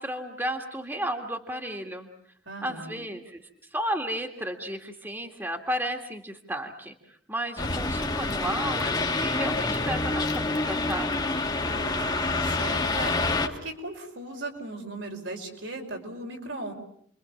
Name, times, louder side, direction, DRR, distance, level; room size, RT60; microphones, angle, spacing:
voice 1, 0.0-2.1 2.6-3.4 3.7-11.2, right 1 dB, 10° right, 3 dB, 2.0 m, -33 dB
voice 2, 2.5-3.0 11.5-16.7, right 2 dB, 75° right, 2 dB, 5.5 m, -38 dB
sound 1, 7.6-13.5, left 2 dB, 20° left, 1.8 m, -27 dB
30.0 x 23.5 x 7.2 m, 0.66 s
head